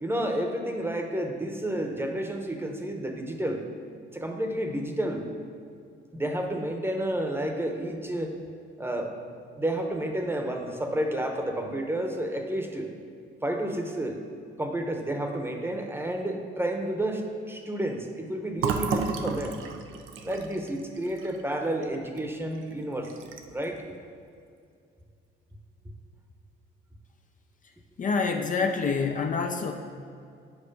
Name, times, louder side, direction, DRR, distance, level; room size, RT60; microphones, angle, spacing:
voice 1, 0.0-3.6 4.1-5.3 6.1-8.3 8.8-9.1 9.6-12.9 13.4-14.2 14.6-19.6 20.2-23.1 23.5-24.0, right 1 dB, 10° right, 3 dB, 0.9 m, -30 dB
Fill (with liquid), 18.6-22.2 22.6-22.7 23.0-23.7, right 5 dB, 80° right, 0.7 m, -33 dB
voice 2, 28.0-29.7, left 5 dB, 40° left, 4 dB, 0.6 m, -26 dB
8.9 x 4.7 x 5.3 m, 2.3 s
cardioid pair, 90°, 20 cm